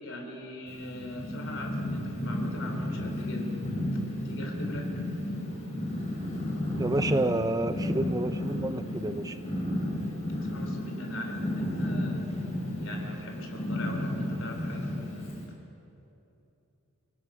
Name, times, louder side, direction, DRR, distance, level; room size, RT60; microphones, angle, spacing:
voice 1, 0.0-3.5 4.3-4.9 10.4-12.3 12.8-15.3, left 1 dB, 60° left, 2 dB, 3.8 m, -41 dB
Purr, 0.7-15.4, left 1 dB, 30° left, 5.5 m, -33 dB
voice 2, 6.8-9.4, right 2 dB, 15° right, 10 dB, 0.4 m, -29 dB
28.0 x 19.0 x 5.8 m, 2.9 s
head